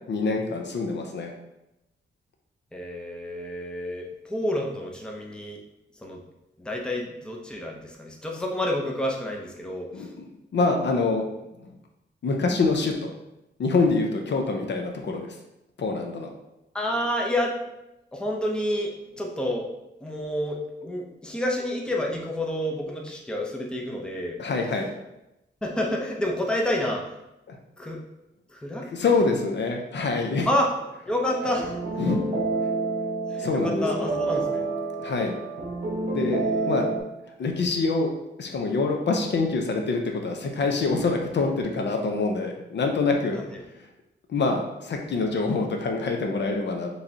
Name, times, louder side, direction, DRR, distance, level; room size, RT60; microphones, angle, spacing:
voice 1, 0.1-1.3 9.9-10.2 10.5-11.3 11.6-11.7 12.2-13.1 13.6-15.4 15.8-16.3 24.4-24.9 27.5-27.6 28.9-30.5 32.0-32.2 33.4-33.8 35.0-35.3 36.1-36.9 37.4-38.1 38.4-43.9 44.3-46.9, left 3 dB, 65° left, 2 dB, 0.6 m, -25 dB
voice 2, 2.7-5.6 5.9-6.2 6.6-10.1 16.7-17.5 18.1-19.7 20.0-24.4 25.6-27.2 27.8-28.0 28.5-28.9 30.5-30.8 31.1-31.8 33.3-34.7 36.1-36.8 43.3-43.6, left 1 dB, 5° left, -1 dB, 0.6 m, -29 dB
sound 1, 31.3-37.0, right 3 dB, 40° right, 0.9 m, -28 dB
5.0 x 3.2 x 2.7 m, 0.90 s
wide cardioid pair, 140°, 20 cm